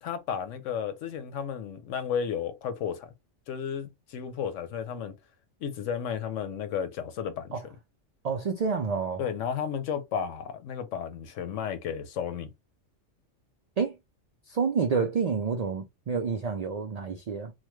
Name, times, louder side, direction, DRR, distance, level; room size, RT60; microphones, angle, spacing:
voice 1, 0.0-3.1 3.5-5.2 5.6-7.7 9.2-12.5, left 7 dB, 85° left, 1.0 m, -33 dB
voice 2, 8.2-9.2 13.8-14.0 14.5-17.5, right 5 dB, 75° right, 0.3 m, -28 dB
3.1 x 2.1 x 3.1 m
omnidirectional pair, 1.3 m